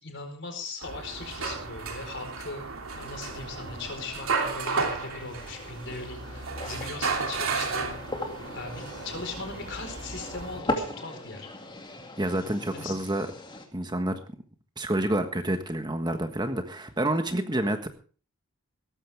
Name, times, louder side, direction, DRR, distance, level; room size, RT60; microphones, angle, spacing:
voice 1, 0.0-2.7 2.9-11.8 12.7-12.9, left 3 dB, 55° left, 5 dB, 4.5 m, -39 dB
sound 1, 0.8-10.6, right 4 dB, 80° right, 2.8 m, -33 dB
sound 2, 2.9-13.7, left 1 dB, 20° left, 2.4 m, -39 dB
voice 2, 12.2-13.3 13.7-14.2 14.8-17.9, right 1 dB, 20° right, 7 dB, 1.4 m, -28 dB
17.5 x 14.5 x 3.5 m, 0.39 s
head